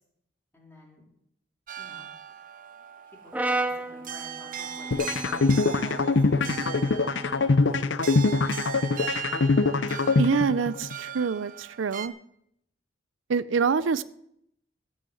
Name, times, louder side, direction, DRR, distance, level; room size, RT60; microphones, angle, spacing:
voice 1, 0.5-1.0 1.8-2.1 3.2-7.5, left 1 dB, 10° left, -3 dB, 3.7 m, -51 dB
sound 1, 1.7-12.1, right 9 dB, 45° right, 0.7 m, -39 dB
Brass instrument, 3.3-7.6, right 2 dB, 10° right, 0.6 m, -34 dB
sound 2, 4.9-10.9, left 3 dB, 75° left, 0.7 m, -23 dB
voice 2, 10.2-12.1 13.3-14.0, right 5 dB, 85° right, 16 dB, 0.5 m, -26 dB
15.0 x 6.3 x 7.7 m, 0.75 s
head